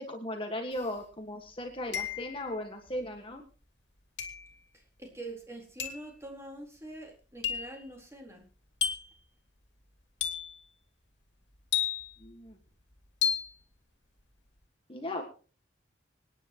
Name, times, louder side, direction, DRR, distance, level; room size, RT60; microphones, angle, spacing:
voice 1, 0.0-3.4 12.2-12.6 14.9-15.2, left 1 dB, 30° left, 3 dB, 1.7 m, -37 dB
sound 1, 0.8-0.9 1.9-2.5 4.2-4.5 5.8-6.1 7.4-7.8 8.8-9.2 10.2-10.6 11.7-12.3 13.2-13.6, left 9 dB, 75° left, 2.5 m, -32 dB
voice 2, 4.7-8.5, right 2 dB, 15° right, 0 dB, 4.1 m, -45 dB
26.0 x 10.0 x 3.0 m, 0.39 s
head